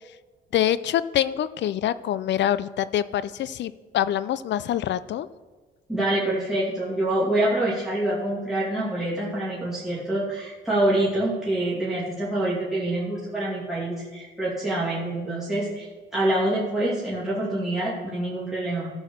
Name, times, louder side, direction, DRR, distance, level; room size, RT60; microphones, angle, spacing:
voice 1, 0.5-5.3, left 11 dB, 65° left, 16 dB, 0.5 m, -25 dB
voice 2, 5.9-15.9 16.1-18.9, right 1 dB, ahead, -8 dB, 2.6 m, -26 dB
13.5 x 4.8 x 6.7 m, 1.3 s
cardioid pair, 90°, 20 cm